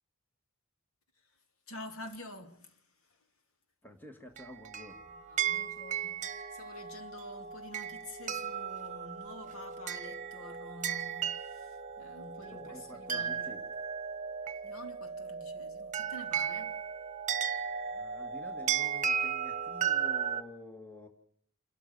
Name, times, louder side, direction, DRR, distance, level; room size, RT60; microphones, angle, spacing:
voice 1, 1.7-3.2 5.1-13.5 14.6-16.8, left 1 dB, 85° left, 2.7 m, -49 dB
voice 2, 3.8-5.1 12.3-13.6 17.9-21.1, left 1 dB, 10° left, 1.7 m, -50 dB
sound 1, 4.4-20.4, right 7 dB, 35° right, 1.4 m, -35 dB
29.0 x 13.0 x 6.8 m
head